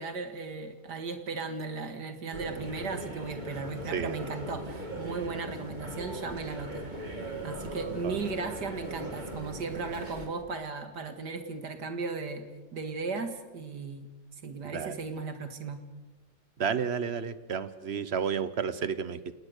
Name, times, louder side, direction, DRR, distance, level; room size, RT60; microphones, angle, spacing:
voice 1, 0.0-6.8 7.4-12.4 12.7-14.1 14.4-15.8, right 4 dB, 65° right, 8 dB, 2.4 m, -36 dB
sound 1, 2.3-10.3, right 1 dB, 25° right, 2.9 m, -39 dB
voice 2, 16.6-19.3, right 7 dB, 45° right, 15 dB, 0.9 m, -31 dB
29.0 x 19.0 x 6.7 m, 1.2 s
omnidirectional pair, 1.9 m